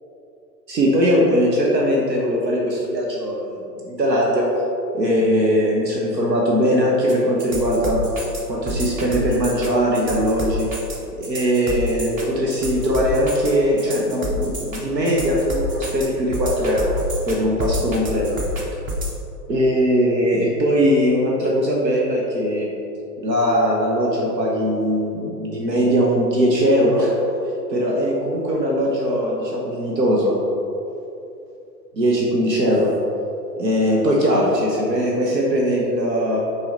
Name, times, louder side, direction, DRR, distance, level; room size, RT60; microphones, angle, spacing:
voice 1, 0.7-4.5 4.9-10.7 11.1-17.0 17.2-18.4 19.5-22.7 23.2-27.2 27.7-30.3 31.9-32.9 33.6-36.4, equal, 80° right, -3 dB, 1.1 m, -20 dB
sound 1, 7.1-19.2, right 1 dB, 15° right, 0.6 m, -29 dB
5.7 x 4.7 x 4.2 m, 2.8 s
figure-of-eight pair, 105°, 50 cm